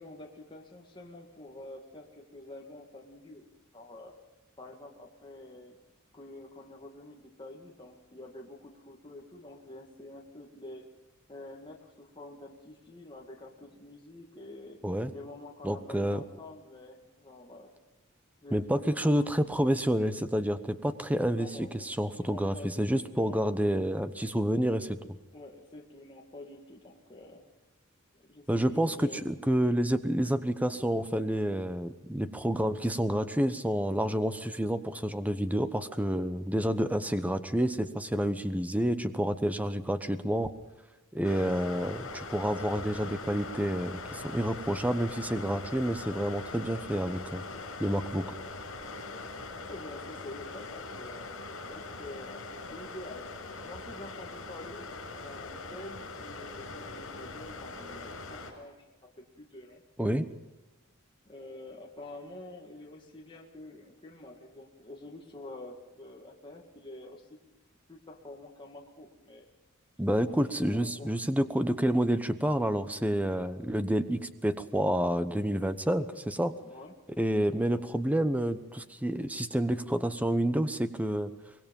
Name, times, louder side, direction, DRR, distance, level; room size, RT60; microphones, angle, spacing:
voice 1, 0.0-3.5 3.7-4.1 4.6-5.8 6.1-10.8 11.3-14.8 15.1-17.7 18.4-19.3 21.3-23.4 25.3-27.5 28.1-29.2 49.7-51.4 51.7-53.3 53.6-59.8 61.3-67.3 67.9-69.5 70.1-71.1 76.6-76.9 77.5-77.8, left 2 dB, 20° left, 0 dB, 2.2 m, -47 dB
voice 2, 15.6-16.2 18.5-25.0 28.5-40.5 41.1-47.4 47.8-48.3 60.0-60.3 70.0-76.5 77.2-81.3, equal, 5° right, 11 dB, 1.0 m, -29 dB
sound 1, 41.2-58.5, left 3 dB, 70° left, 6.0 m, -42 dB
24.5 x 20.5 x 5.5 m, 1.1 s
head